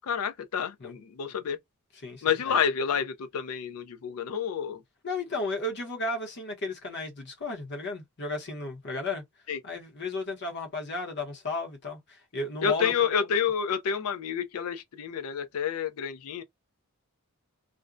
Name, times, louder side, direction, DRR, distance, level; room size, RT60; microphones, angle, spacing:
voice 1, 0.0-1.6 2.2-4.8 9.5-9.6 12.6-16.4, left 7 dB, 85° left, 0.4 m, -29 dB
voice 2, 2.0-2.6 5.0-9.2 9.6-12.9, left 2 dB, 55° left, 0.8 m, -34 dB
2.5 x 2.1 x 2.3 m
head